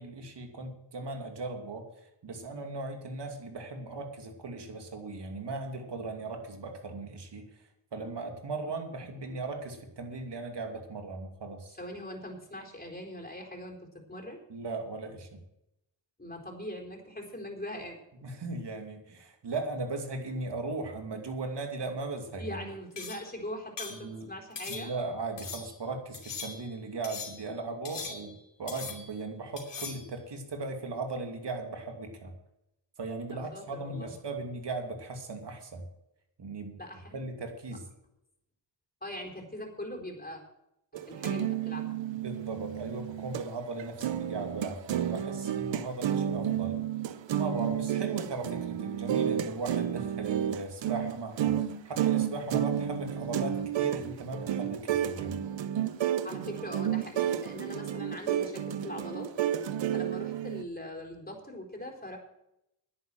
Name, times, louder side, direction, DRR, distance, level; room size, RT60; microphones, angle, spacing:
voice 1, 0.0-1.9 2.2-11.8 14.5-15.4 18.2-22.7 23.9-24.3 24.7-28.3 28.6-32.3 33.0-35.8 36.4-36.8 37.1-37.9 42.1-46.8 47.4-55.4, right 3 dB, 65° right, 4 dB, 2.6 m, -38 dB
voice 2, 11.8-14.4 16.2-18.0 22.4-24.9 33.3-34.1 36.8-37.2 39.0-40.4 40.9-42.0 56.2-59.3 59.7-62.2, left 1 dB, 20° left, 0 dB, 4.2 m, -41 dB
sound 1, 23.0-23.3 23.8-24.0 24.6-25.1 25.4-25.8 26.1-26.7 27.0-27.5 27.8-28.4 28.7-29.2 29.6-30.1, left 5 dB, 70° left, 2.9 m, -41 dB
sound 2, 40.9-43.5 43.8-60.6, right 10 dB, 85° right, 0.8 m, -31 dB
10.5 x 9.2 x 7.7 m, 0.83 s
cardioid pair, 55°, 44 cm